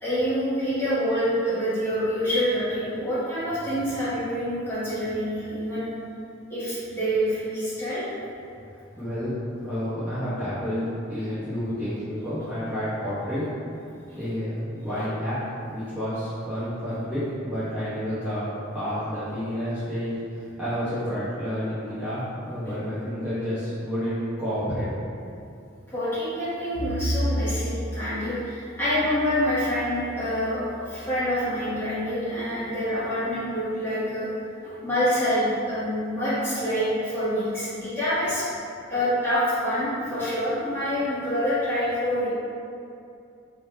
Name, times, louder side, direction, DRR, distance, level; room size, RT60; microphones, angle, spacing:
voice 1, 0.0-5.9 6.5-8.1 14.1-14.2 14.9-15.1 22.6-22.7 25.9-34.3 34.6-38.4 38.9-42.3, equal, 10° left, -13 dB, 1.4 m, -26 dB
voice 2, 9.0-9.3 9.6-13.5 14.2-15.4 15.7-18.5 18.7-25.2, equal, 5° right, -16 dB, 0.8 m, -30 dB
Bowed string instrument, 26.7-31.1, equal, 75° left, 0.9 m, -32 dB
3.3 x 2.7 x 4.3 m, 2.6 s
head